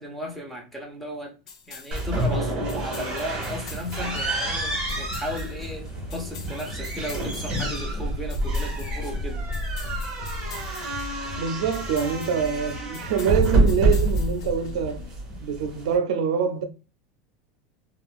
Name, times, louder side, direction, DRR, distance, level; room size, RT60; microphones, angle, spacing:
voice 1, 0.0-1.3 1.7-9.4, equal, 5° left, 0.6 m, -35 dB
sound 1, 1.5-15.0, left 6 dB, 90° left, 0.6 m, -46 dB
sound 2, 1.9-16.0, right 1 dB, 20° right, 1.3 m, -28 dB
sound 3, 3.8-15.4, left 2 dB, 65° left, 1.1 m, -39 dB
voice 2, 11.4-15.0 15.4-16.6, right 7 dB, 80° right, 0.5 m, -25 dB
3.6 x 2.3 x 2.3 m
supercardioid pair, 165°, 3 cm